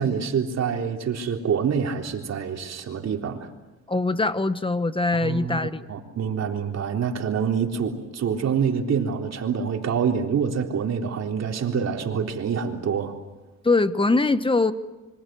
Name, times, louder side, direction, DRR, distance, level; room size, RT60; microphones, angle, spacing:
voice 1, 0.0-3.5 5.2-13.1, right 7 dB, 60° right, 2 dB, 3.8 m, -26 dB
voice 2, 3.9-5.9 13.6-14.7, left 3 dB, 15° left, 12 dB, 1.3 m, -22 dB
26.5 x 24.5 x 7.8 m, 1.1 s
cardioid pair, 90°, 30 cm